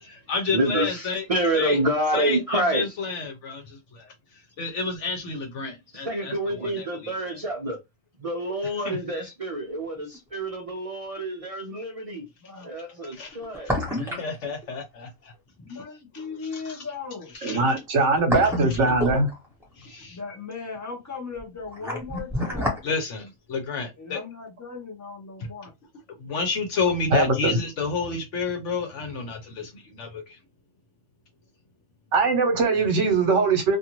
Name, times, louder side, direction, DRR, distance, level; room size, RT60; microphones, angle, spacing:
voice 1, 0.0-1.2 1.5-1.8 2.1-7.4 8.6-9.0 13.1-13.4 14.0-15.3 15.7-15.8 16.1-16.8 17.3-17.7 18.7-18.8 19.7-20.4 22.8-24.2 26.2-30.4, left 4 dB, 65° left, 1.0 m, -31 dB
voice 2, 0.5-2.9 6.0-7.8 8.2-12.2 12.6-13.7, right 1 dB, 45° right, 0.4 m, -27 dB
sound 1, 10.1-10.2 13.3-14.4 14.6-14.7 17.9-19.6 21.4-22.9 23.2-23.3, left 1 dB, ahead, 0.9 m, -29 dB
voice 3, 12.4-12.7 15.6-17.3 20.1-22.8 24.0-25.7, left 5 dB, 20° left, 0.6 m, -37 dB
voice 4, 17.4-19.3 27.1-27.6 32.1-33.8, right 3 dB, 65° right, 1.1 m, -21 dB
2.5 x 2.5 x 2.9 m
omnidirectional pair, 1.4 m